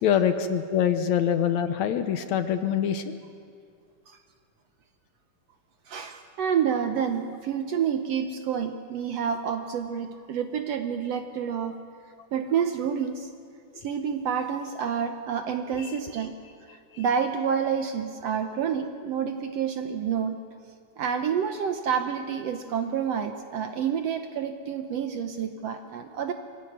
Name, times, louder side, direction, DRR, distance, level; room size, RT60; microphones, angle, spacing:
voice 1, 0.0-3.2 15.8-15.9, left 9 dB, 70° left, 9 dB, 2.0 m, -24 dB
voice 2, 5.9-11.8 12.3-13.3 13.8-16.4 16.7-20.4 21.0-26.3, right 7 dB, 65° right, 6 dB, 1.7 m, -28 dB
24.0 x 17.0 x 9.4 m, 2.2 s
omnidirectional pair, 3.7 m